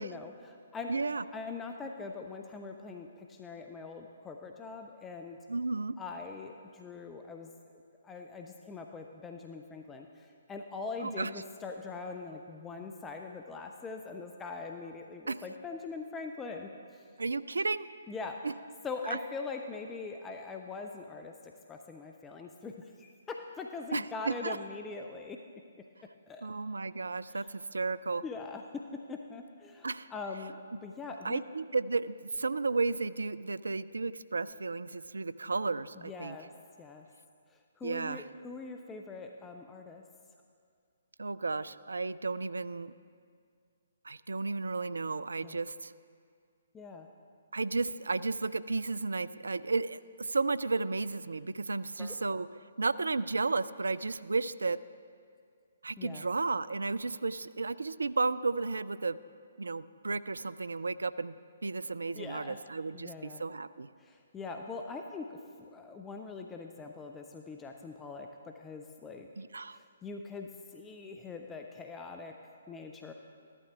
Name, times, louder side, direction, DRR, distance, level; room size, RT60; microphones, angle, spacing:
voice 1, 0.0-0.9 1.3-5.4 6.0-7.5 8.0-17.1 18.1-18.4 18.8-25.4 26.3-26.5 27.3-27.4 28.2-30.6 30.8-31.4 35.9-36.5 36.8-37.1 37.5-40.0 45.4-45.6 46.7-47.1 52.0-52.1 56.0-56.3 62.1-62.6 62.9-63.4 64.0-69.3 69.7-72.3 72.7-73.1, left 4 dB, 10° left, 3 dB, 0.5 m, -42 dB
voice 2, 0.9-1.2 5.5-6.0 11.0-11.3 15.3-15.4 17.2-17.9 18.4-18.5 23.9-24.6 26.4-28.2 29.8-30.1 31.2-36.4 37.8-38.2 41.2-42.9 44.0-45.9 47.5-52.5 52.8-54.8 55.8-59.2 59.6-61.3 61.6-63.9 69.4-69.8, right 3 dB, 65° right, 16 dB, 0.3 m, -33 dB
14.5 x 11.5 x 3.6 m, 2.2 s
figure-of-eight pair, 130°, 0 cm